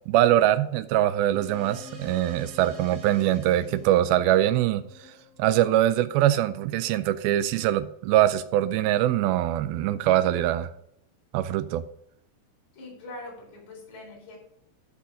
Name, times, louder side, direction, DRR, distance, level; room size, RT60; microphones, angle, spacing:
voice 1, 0.1-4.8 5.4-10.7 11.3-11.8, right 12 dB, 90° right, 2.1 m, -23 dB
sound 1, 1.3-6.1, left 3 dB, 45° right, 3.0 m, -47 dB
voice 2, 12.7-14.4, left 2 dB, 45° left, 5.1 m, -42 dB
12.5 x 5.5 x 5.0 m
omnidirectional pair, 4.8 m